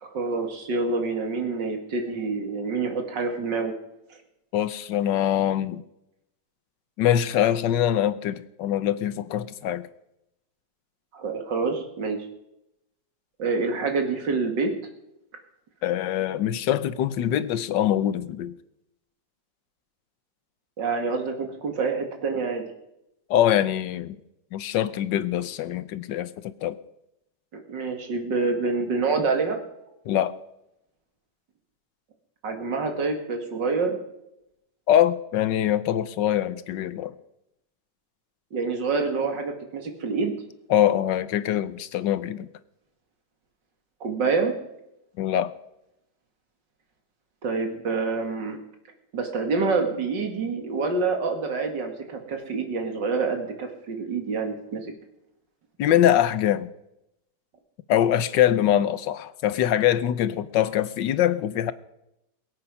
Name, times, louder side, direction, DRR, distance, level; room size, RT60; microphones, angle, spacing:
voice 1, 0.0-3.7 11.1-12.3 13.4-14.7 20.8-22.6 27.5-29.6 32.4-34.0 38.5-40.3 44.0-44.5 47.4-48.6 49.1-54.9, right 4 dB, 85° right, 5 dB, 2.7 m, -27 dB
voice 2, 4.5-5.8 7.0-9.9 15.8-18.5 23.3-24.2 24.5-26.8 30.1-30.3 34.9-37.1 40.7-42.5 45.2-45.5 55.8-56.7 57.9-61.7, left 11 dB, 85° left, 15 dB, 1.4 m, -23 dB
22.0 x 8.5 x 5.5 m, 0.84 s
omnidirectional pair, 1.9 m